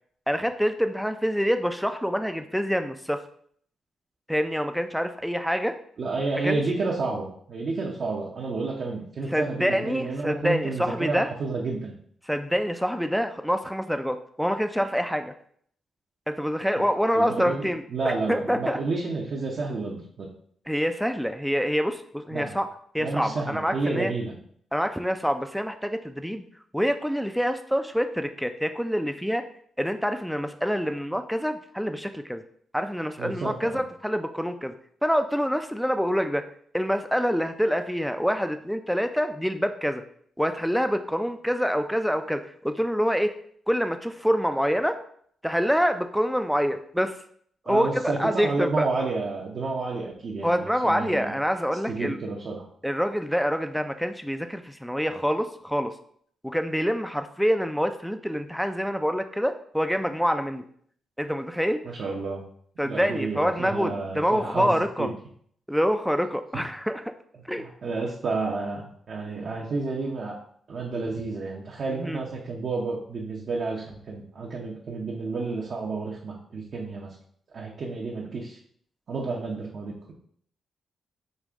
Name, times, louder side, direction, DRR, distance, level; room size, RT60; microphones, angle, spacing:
voice 1, 0.3-3.2 4.3-5.7 6.4-6.6 9.3-11.3 12.3-15.3 16.3-18.8 20.7-22.7 22.9-24.1 24.7-26.4 26.7-29.4 29.8-32.4 32.7-34.7 35.0-36.4 36.7-40.0 40.4-43.3 43.7-45.0 45.4-47.1 47.7-48.9 50.4-52.2 52.8-55.9 56.4-60.6 61.2-61.8 62.8-65.1 65.7-67.0 67.5-67.7 72.0-72.2, equal, ahead, 8 dB, 0.4 m, -26 dB
voice 2, 6.0-11.9 16.8-16.9 17.1-20.3 22.3-22.6 23.0-24.3 33.2-33.8 47.6-51.3 51.9-52.7 61.9-62.4 62.8-65.1 67.6-70.4 70.7-77.2 77.5-78.6 79.1-80.1, right 3 dB, 60° right, -3 dB, 0.7 m, -30 dB
5.2 x 2.4 x 3.5 m, 0.62 s
supercardioid pair, 60°, 0 cm